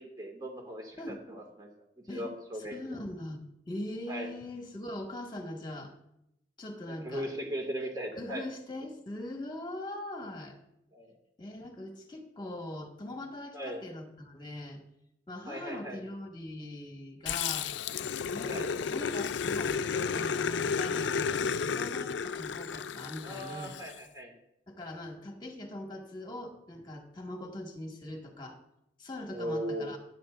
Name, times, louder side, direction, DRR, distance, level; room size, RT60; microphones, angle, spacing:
voice 1, 0.0-1.7 2.1-3.0 4.1-4.3 6.9-8.4 10.9-11.1 13.5-13.8 15.5-16.0 18.4-18.7 23.2-24.3 29.3-30.0, equal, 20° right, 1 dB, 2.0 m, -38 dB
voice 2, 2.7-5.9 6.6-7.3 8.2-10.6 11.4-14.8 15.3-17.7 18.3-23.8 24.7-28.6 29.0-30.0, left 1 dB, 25° left, 2 dB, 1.7 m, -41 dB
Growling, 17.3-23.9, left 6 dB, 90° left, 0.4 m, -32 dB
14.5 x 11.0 x 2.5 m, 0.80 s
head